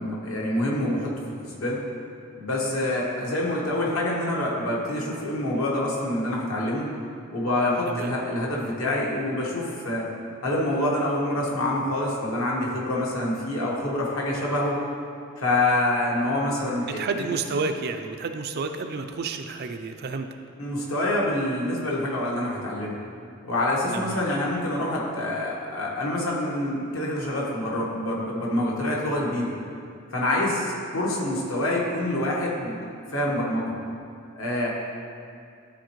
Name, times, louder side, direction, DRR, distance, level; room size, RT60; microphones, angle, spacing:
voice 1, 0.0-1.8 2.4-6.9 7.3-10.1 10.4-14.8 15.4-17.3 20.6-23.0 23.4-29.5 30.1-33.7 34.4-34.7, left 1 dB, 70° left, -3 dB, 1.3 m, -26 dB
voice 2, 16.9-20.3 23.9-24.3, right 4 dB, 50° right, 6 dB, 0.4 m, -30 dB
11.5 x 4.3 x 3.1 m, 2.3 s
head